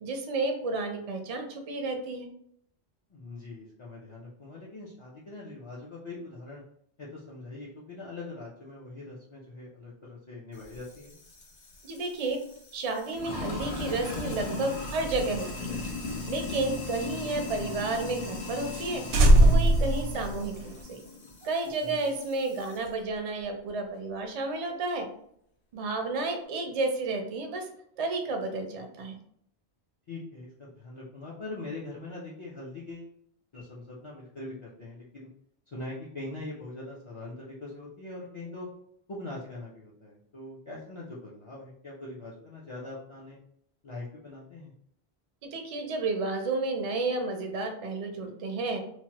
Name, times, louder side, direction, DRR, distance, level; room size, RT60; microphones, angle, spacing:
voice 1, 0.0-2.3 11.8-12.4 12.7-15.8 16.3-19.0 19.4-21.0 21.4-25.1 25.7-27.7 28.0-29.2 45.4-48.8, right 3 dB, 50° right, 4 dB, 0.4 m, -31 dB
voice 2, 3.1-6.6 7.0-11.1 21.8-22.1 30.1-33.1 33.5-35.3 35.7-38.7 39.1-43.4 43.8-44.7, left 2 dB, 45° left, -6 dB, 0.4 m, -42 dB
Sink (filling or washing), 10.6-22.9, left 4 dB, 85° left, 1.0 m, -39 dB
sound 1, 14.8-17.6 18.0-18.1 18.4-18.5 18.7-18.9 19.1-20.8, right 1 dB, 85° right, 0.9 m, -23 dB
3.0 x 2.1 x 2.8 m, 0.68 s
omnidirectional pair, 1.1 m